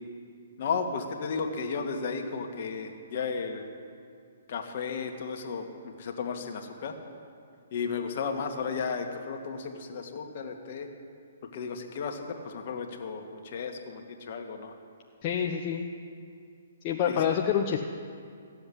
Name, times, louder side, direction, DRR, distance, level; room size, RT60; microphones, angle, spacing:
voice 1, 0.6-3.6 4.5-6.9 7.7-10.9 11.5-14.7 17.1-17.3, left 5 dB, 55° left, 4 dB, 1.8 m, -34 dB
voice 2, 15.2-15.9 16.8-17.9, left 8 dB, 35° left, 2 dB, 0.8 m, -27 dB
16.0 x 7.8 x 9.9 m, 2.3 s
hypercardioid pair, 145°, 0 cm